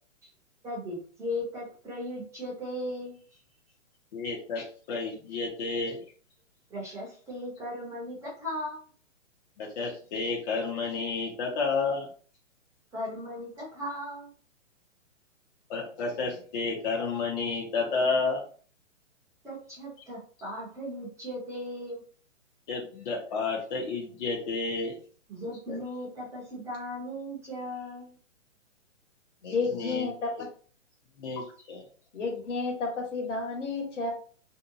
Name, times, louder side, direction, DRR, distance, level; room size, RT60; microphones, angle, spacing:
voice 1, 0.6-3.4 6.7-8.8 12.9-14.3 19.4-22.0 25.3-28.2, left 1 dB, 10° right, -6 dB, 0.5 m, -37 dB
voice 2, 4.1-6.0 9.6-12.1 15.7-18.4 22.7-25.0 25.7-25.8 29.4-30.1 31.2-31.8, left 4 dB, 40° left, -2 dB, 0.6 m, -31 dB
voice 3, 29.4-30.5 32.1-34.1, left 4 dB, 70° left, 1 dB, 1.2 m, -31 dB
2.6 x 2.2 x 2.6 m, 0.43 s
hypercardioid pair, 135°, 38 cm